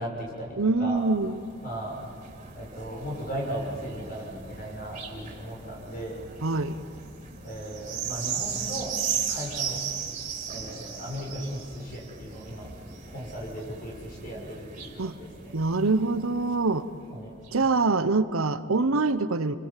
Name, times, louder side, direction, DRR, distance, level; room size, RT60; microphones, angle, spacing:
voice 1, 0.0-1.0 1.6-2.0 2.5-6.2 7.4-8.9 9.3-9.8 10.5-12.7 13.1-15.5 17.1-17.3, equal, 45° left, -1 dB, 6.7 m, -37 dB
voice 2, 0.6-1.4 6.4-6.8 15.0-15.2 15.5-16.9 17.5-19.6, right 3 dB, 85° right, 12 dB, 0.9 m, -24 dB
sound 1, 1.0-16.8 17.5-17.6, right 7 dB, 35° right, 3.5 m, -37 dB
29.5 x 23.0 x 7.6 m, 2.3 s
head